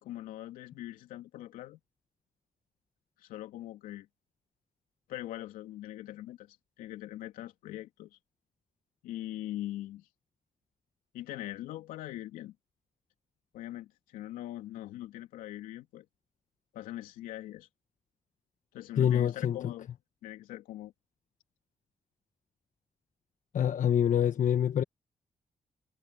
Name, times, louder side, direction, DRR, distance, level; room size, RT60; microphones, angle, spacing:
voice 1, 0.0-1.8 3.2-4.1 5.1-8.2 9.0-10.1 11.1-12.5 13.5-16.0 16.7-17.7 18.7-19.9 20.2-20.9, left 14 dB, 90° left, 2.8 m, -42 dB
voice 2, 19.0-19.7 23.5-24.8, left 9 dB, 70° left, 1.3 m, -26 dB
hypercardioid pair, 40°, 14 cm